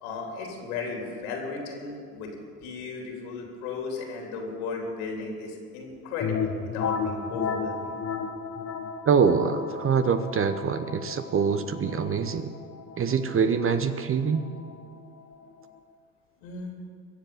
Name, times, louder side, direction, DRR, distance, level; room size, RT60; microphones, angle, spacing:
voice 1, 0.0-2.3 2.6-7.8 16.4-16.8, left 4 dB, 70° left, 1 dB, 3.7 m, -35 dB
sound 1, 6.2-15.8, left 5 dB, 35° left, 1.9 m, -34 dB
voice 2, 9.1-12.5 13.0-14.4, right 6 dB, 30° right, 10 dB, 0.9 m, -24 dB
23.0 x 7.9 x 7.2 m, 2.1 s
hypercardioid pair, 70°, 45 cm